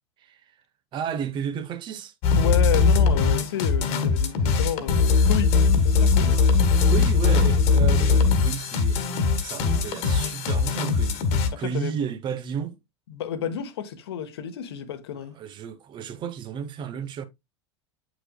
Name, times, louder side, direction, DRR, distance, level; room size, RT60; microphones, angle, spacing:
voice 1, 0.9-2.1 6.8-11.2 11.6-12.8 15.3-17.3, right 8 dB, 30° right, 0.8 m, -32 dB
sound 1, 2.2-11.5, left 5 dB, 45° left, 1.5 m, -20 dB
voice 2, 2.4-5.5 5.9-6.4 11.5-11.9 13.1-15.4, left 9 dB, 60° left, 1.2 m, -31 dB
8.3 x 6.0 x 2.2 m
figure-of-eight pair, 85°, 15 cm